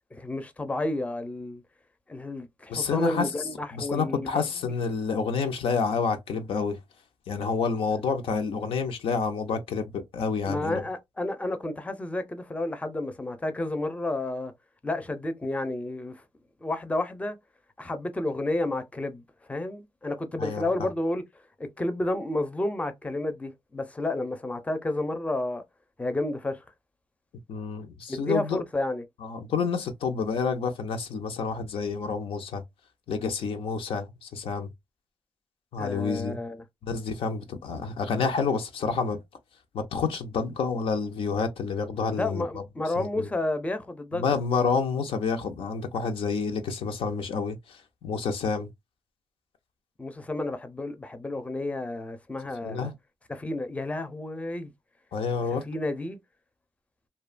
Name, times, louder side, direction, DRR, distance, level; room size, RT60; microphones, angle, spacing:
voice 1, 0.1-1.6 2.1-4.7 10.5-14.5 14.8-16.2 16.6-17.4 17.8-19.2 19.5-21.2 21.8-25.6 26.0-26.6 28.1-29.0 35.8-36.6 42.1-44.3 50.0-52.9 53.3-54.7 55.7-56.2, left 2 dB, 15° left, 0.5 m, -31 dB
voice 2, 2.7-3.3 3.7-6.8 7.3-10.8 20.4-20.9 27.5-28.6 29.2-32.6 33.1-34.7 35.7-36.4 36.8-39.2 39.7-42.6 43.0-43.3 44.1-48.7 52.6-52.9 55.1-55.6, left 5 dB, 85° left, 0.5 m, -29 dB
2.7 x 2.1 x 2.4 m
cardioid pair, 90°, 9 cm